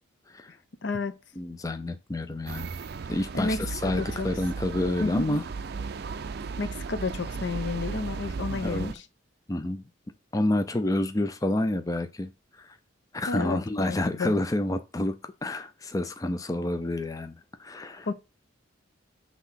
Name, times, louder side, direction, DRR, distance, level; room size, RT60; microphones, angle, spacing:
voice 1, 0.8-1.1 3.3-4.3 5.0-5.3 6.6-9.0 13.3-14.3 18.1-18.2, left 3 dB, 60° left, 0.6 m, -31 dB
voice 2, 1.4-2.7 3.1-5.4 8.5-8.9 9.5-9.8 10.3-12.8 13.1-18.1, left 1 dB, 15° left, 0.4 m, -29 dB
sound 1, 2.5-8.9, right 4 dB, 55° right, 0.4 m, -35 dB
5.8 x 3.6 x 5.7 m
head